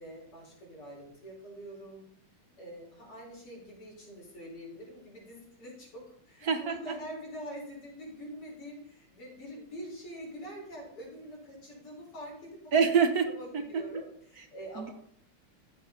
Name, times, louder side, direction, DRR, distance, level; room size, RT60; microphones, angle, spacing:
voice 1, 0.0-2.1 2.6-12.7 13.3-14.9, equal, 85° left, -3 dB, 5.5 m, -45 dB
voice 2, 6.4-6.9 12.7-13.3 13.7-13.8 14.8-14.9, right 6 dB, 55° right, 7 dB, 1.2 m, -25 dB
14.5 x 7.8 x 3.9 m, 0.64 s
omnidirectional pair, 2.4 m